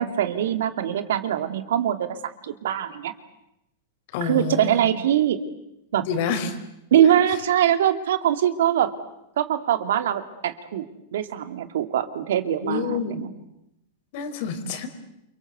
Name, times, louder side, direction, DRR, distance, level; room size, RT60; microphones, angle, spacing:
voice 1, 0.0-2.1 2.4-3.1 4.2-5.4 5.9-6.1 6.9-9.0 9.4-10.9 11.1-13.3, right 10 dB, 80° right, 10 dB, 2.5 m, -22 dB
voice 2, 4.1-4.8 6.0-6.5 12.6-13.2 14.1-14.9, left 6 dB, 55° left, 8 dB, 4.8 m, -28 dB
28.5 x 24.5 x 8.2 m, 0.86 s
supercardioid pair, 150°, 0 cm